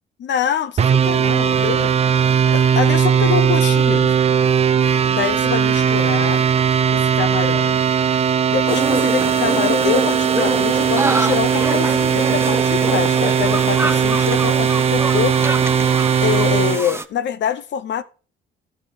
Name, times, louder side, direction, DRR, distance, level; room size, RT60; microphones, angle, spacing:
voice 1, 0.2-1.9 2.5-4.1 5.1-6.4 6.9-7.8 8.1-15.6 16.2-18.0, left 9 dB, 65° left, 0.9 m, -25 dB
sound 1, 0.8-16.8, right 7 dB, 30° right, 0.4 m, -18 dB
sound 2, 8.7-17.0, right 2 dB, 10° right, 0.7 m, -25 dB
12.0 x 5.7 x 5.0 m
cardioid pair, 90°, 20 cm